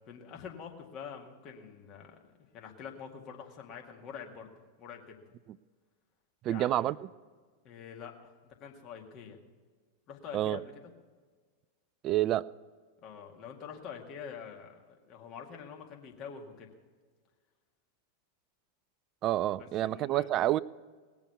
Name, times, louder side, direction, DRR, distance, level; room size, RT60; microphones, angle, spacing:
voice 1, 0.1-2.2 2.5-4.5 4.8-5.2 6.5-7.0 7.6-9.4 10.1-10.7 13.0-16.7 19.6-20.3, left 7 dB, 35° left, 1 dB, 2.0 m, -46 dB
voice 2, 6.4-7.0 10.3-10.6 12.0-12.5 19.2-20.6, right 13 dB, 35° right, 20 dB, 0.3 m, -28 dB
20.0 x 7.1 x 6.8 m, 1.5 s
figure-of-eight pair, 90°, 0 cm